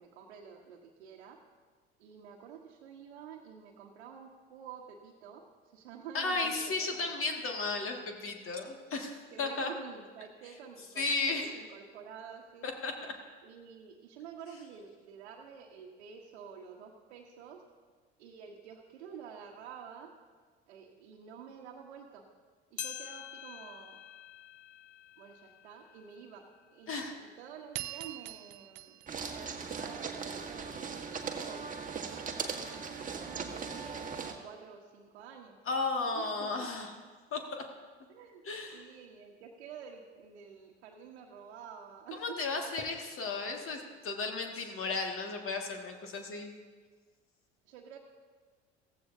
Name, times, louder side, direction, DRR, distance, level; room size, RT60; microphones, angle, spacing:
voice 1, 0.0-1.4 2.0-5.4 5.7-7.1 9.3-12.7 13.4-17.6 18.2-20.1 20.7-22.3 22.7-24.0 25.2-32.6 33.0-35.6 36.1-36.7 38.1-38.4 38.7-42.4 44.2-44.3 47.6-48.0, right 7 dB, 75° right, -1 dB, 1.3 m, -49 dB
voice 2, 6.1-9.7 11.0-11.6 12.6-13.2 26.9-27.2 35.7-36.9 37.3-37.6 38.4-38.9 42.1-46.5, left 3 dB, 40° left, 3 dB, 2.0 m, -34 dB
sound 1, 22.8-27.4 27.9-28.0 28.8-28.9 29.9-30.0, left 11 dB, 80° left, 0.7 m, -47 dB
sound 2, 27.7-30.3, right 16 dB, 55° right, 0.8 m, -44 dB
sound 3, 29.1-34.3, right 5 dB, 25° right, 1.5 m, -39 dB
16.0 x 15.0 x 2.7 m, 1.5 s
hypercardioid pair, 65°, 33 cm